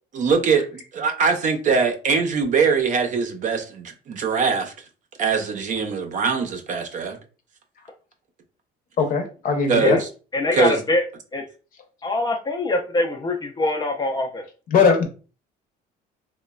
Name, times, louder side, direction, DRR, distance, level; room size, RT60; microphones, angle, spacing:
voice 1, 0.1-4.7 5.2-7.2 9.7-10.1 10.5-10.8, right 5 dB, 50° right, 0.5 m, -22 dB
voice 2, 9.0-10.0 14.7-15.1, left 5 dB, 55° left, 0.7 m, -19 dB
voice 3, 10.3-11.0 11.3-11.4 12.0-14.4, left 2 dB, 25° left, 0.4 m, -23 dB
3.0 x 2.1 x 2.2 m
cardioid pair, 110°, 17 cm